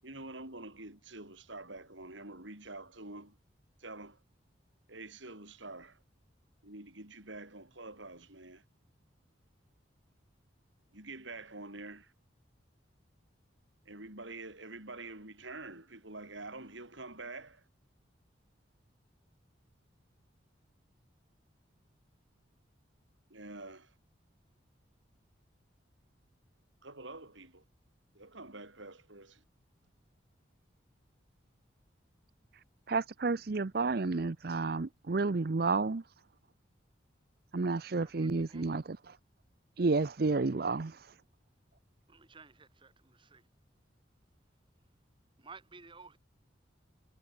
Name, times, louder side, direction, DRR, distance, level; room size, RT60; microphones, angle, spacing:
voice 1, 0.0-3.4 3.8-4.2 4.9-6.0 6.6-8.6 10.9-12.1 13.9-17.7 23.3-23.9 26.8-27.6 28.1-29.4, right 2 dB, 75° right, 7.0 m, -47 dB
voice 2, 32.9-36.0 37.5-39.2 39.8-41.1, right 3 dB, 50° right, 0.6 m, -31 dB
voice 3, 38.0-38.6 42.1-42.9 43.3-43.4 45.4-46.2, right 4 dB, 25° right, 1.6 m, -53 dB
head